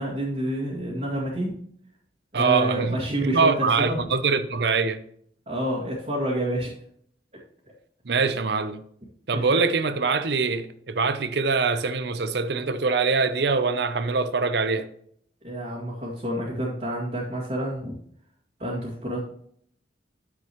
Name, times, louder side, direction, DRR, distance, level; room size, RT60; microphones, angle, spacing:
voice 1, 0.0-1.6 2.3-4.0 5.5-6.7 9.3-9.4 15.4-17.9 18.6-19.2, right 1 dB, 40° right, 2.1 m, -28 dB
voice 2, 2.3-5.0 8.1-8.8 9.3-14.9, right 4 dB, 65° right, 0.6 m, -23 dB
9.7 x 7.4 x 3.0 m
head